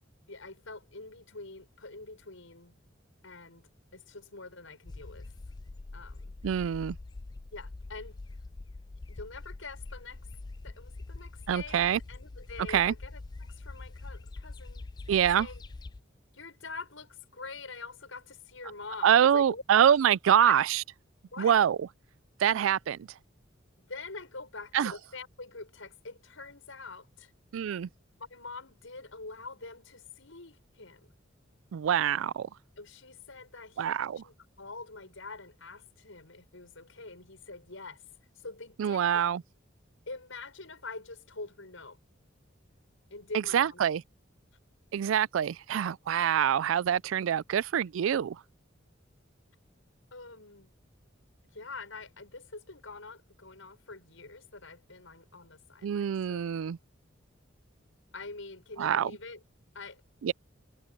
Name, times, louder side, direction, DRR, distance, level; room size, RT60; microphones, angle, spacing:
voice 1, 0.3-2.8 3.2-5.3 5.9-6.4 7.5-8.2 9.1-10.2 10.6-13.2 13.5-14.9 15.3-15.6 16.3-19.6 20.4-20.5 21.3-21.6 23.9-27.3 28.3-31.1 32.8-34.0 34.2-38.0 38.4-39.2 40.1-42.0 43.1-43.8 47.5-47.6 50.1-50.7 51.5-56.5 58.1-59.4 59.7-60.0, left 3 dB, 85° left, 6.1 m, -45 dB
sound 1, 4.9-16.0, left 2 dB, 20° left, 0.3 m, -44 dB
voice 2, 6.4-7.0 11.5-12.0 12.7-12.9 15.1-15.5 19.0-20.8 21.4-21.8 22.4-23.1 24.7-24.9 27.5-27.9 31.7-32.5 33.8-34.2 38.8-39.4 43.5-44.0 44.9-48.4 55.8-56.8 58.8-59.1 60.2-60.3, right 9 dB, 85° right, 0.3 m, -25 dB
head